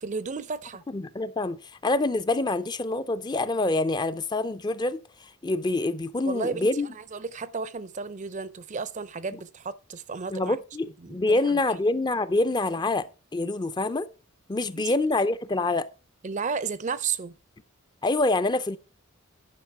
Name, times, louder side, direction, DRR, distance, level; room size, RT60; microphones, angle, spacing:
voice 1, 0.0-0.8 6.2-10.6 11.0-11.6 14.8-14.9 16.2-17.4, right 5 dB, 35° right, 0.5 m, -33 dB
voice 2, 0.9-6.9 10.3-14.1 14.5-15.9 18.0-18.8, left 2 dB, 20° left, 0.5 m, -26 dB
10.5 x 5.2 x 5.8 m
head